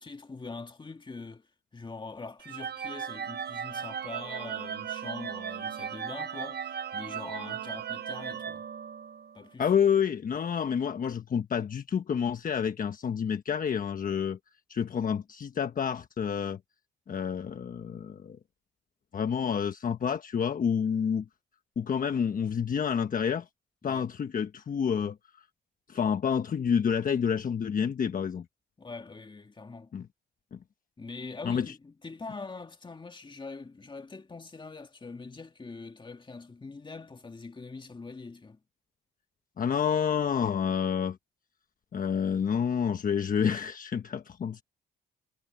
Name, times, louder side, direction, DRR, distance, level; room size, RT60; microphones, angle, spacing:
voice 1, 0.0-1.5 1.7-6.7 6.9-8.7 9.3-9.7 23.8-24.1 28.8-29.9 31.0-38.6, left 3 dB, 25° left, 2.2 m, -43 dB
sound 1, 2.4-9.4, right 8 dB, 55° right, 1.0 m, -37 dB
voice 2, 9.6-14.4 14.7-16.6 17.1-18.4 19.1-21.3 21.8-23.4 23.8-25.1 25.9-28.4 29.9-30.0 30.5-30.6 31.4-31.7 39.6-41.2 41.9-44.6, left 7 dB, 45° left, 1.2 m, -28 dB
cardioid pair, 90°, 20 cm